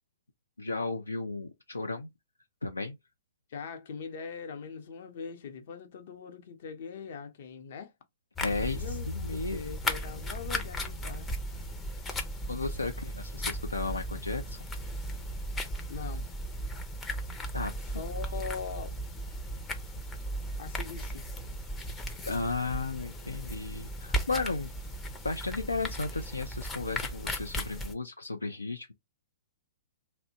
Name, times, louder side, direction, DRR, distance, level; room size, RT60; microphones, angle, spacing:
voice 1, 0.6-2.1 2.6-3.0 8.4-9.6 12.5-14.6 17.5-17.7 22.3-24.7 25.2-28.9, left 3 dB, 85° left, 0.3 m, -34 dB
voice 2, 3.5-7.9 8.7-11.3 15.9-16.2 17.9-18.9 20.6-21.2, left 6 dB, 55° left, 0.7 m, -41 dB
sound 1, 8.4-27.9, equal, 15° left, 0.5 m, -36 dB
2.7 x 2.1 x 2.7 m
figure-of-eight pair, 115°, 0 cm